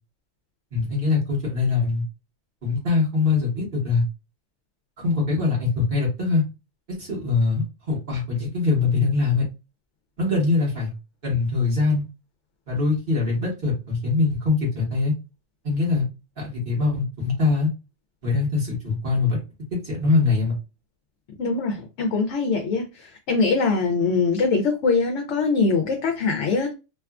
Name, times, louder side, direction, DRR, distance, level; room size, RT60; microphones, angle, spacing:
voice 1, 0.7-2.0 2.6-4.0 5.0-6.4 6.9-9.4 10.2-10.9 11.2-12.0 12.7-15.1 15.6-16.0 16.4-17.7 18.2-19.4 19.7-20.6, left 4 dB, 45° right, 1.3 m, -23 dB
voice 2, 21.4-26.7, left 4 dB, 70° left, 0.9 m, -23 dB
3.0 x 2.3 x 2.3 m
omnidirectional pair, 1.3 m